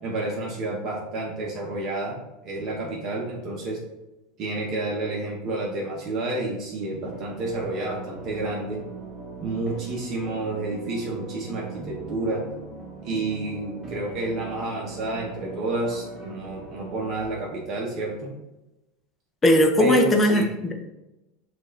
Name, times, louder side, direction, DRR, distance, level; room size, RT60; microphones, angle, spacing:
voice 1, 0.0-2.2 2.4-3.8 4.4-8.8 9.4-12.4 13.0-18.3 19.8-20.5, right 2 dB, 40° right, -3 dB, 1.0 m, -29 dB
sound 1, 7.0-17.2, right 4 dB, 10° right, 1.1 m, -41 dB
voice 2, 19.4-20.7, left 1 dB, 15° left, 3 dB, 0.6 m, -19 dB
6.2 x 2.6 x 3.2 m, 0.97 s
supercardioid pair, 135°, 0 cm